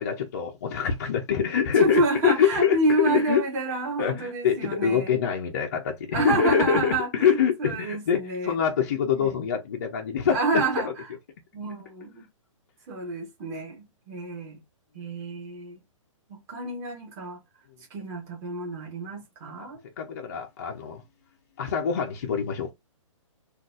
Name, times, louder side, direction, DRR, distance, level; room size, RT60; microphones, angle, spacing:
voice 1, 0.0-2.8 3.0-3.4 4.0-10.9 19.6-19.7 20.0-21.0 21.6-22.7, left 7 dB, 30° left, 0.4 m, -25 dB
voice 2, 1.7-5.1 6.1-8.6 9.2-9.4 10.3-11.1 11.5-12.2 12.9-14.6 14.9-15.8 16.3-17.4 17.9-19.8, right 2 dB, 15° right, 0.9 m, -28 dB
3.8 x 2.3 x 2.4 m
hypercardioid pair, 170°, 17 cm